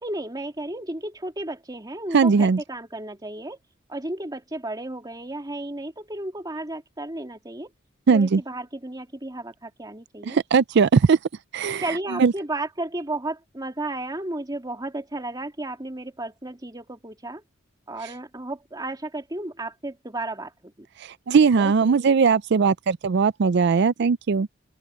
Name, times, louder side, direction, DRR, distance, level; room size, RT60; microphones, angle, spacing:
voice 1, 0.0-3.6 3.9-7.7 8.1-10.4 11.8-17.4 17.9-20.5 21.6-22.1, right 2 dB, 20° right, 2.5 m, -33 dB
voice 2, 2.1-2.6 8.1-8.4 10.2-11.2 11.5-12.3 18.0-18.1 21.0-24.5, right 5 dB, 55° right, 0.4 m, -19 dB
open air
head